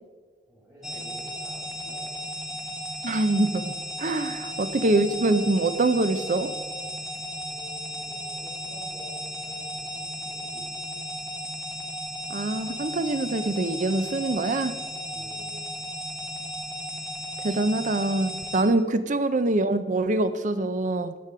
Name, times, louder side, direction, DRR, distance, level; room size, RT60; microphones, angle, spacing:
voice 1, 0.5-2.1 4.4-4.5 7.3-11.0 15.1-15.6, equal, 15° right, 3.7 m, -50 dB
sound 1, 0.8-18.6, equal, ahead, 1.6 m, -35 dB
voice 2, 3.0-6.5 12.3-14.7 17.4-21.2, right 2 dB, 45° right, 0.7 m, -24 dB
14.0 x 9.3 x 4.9 m
head